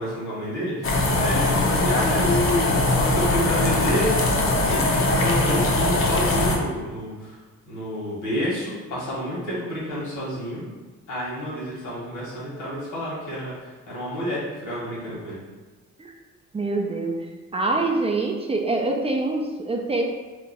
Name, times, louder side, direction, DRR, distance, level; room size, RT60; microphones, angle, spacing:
voice 1, 0.0-4.1 4.4-7.4 7.7-10.7 11.1-15.4, equal, 75° left, -7 dB, 1.4 m, -29 dB
sound 1, 0.8-6.6, left 2 dB, 45° left, 0.6 m, -21 dB
voice 2, 16.5-17.2 17.5-20.0, right 2 dB, 20° right, 2 dB, 0.4 m, -25 dB
2.8 x 2.2 x 4.1 m, 1.3 s
cardioid pair, 90°, 30 cm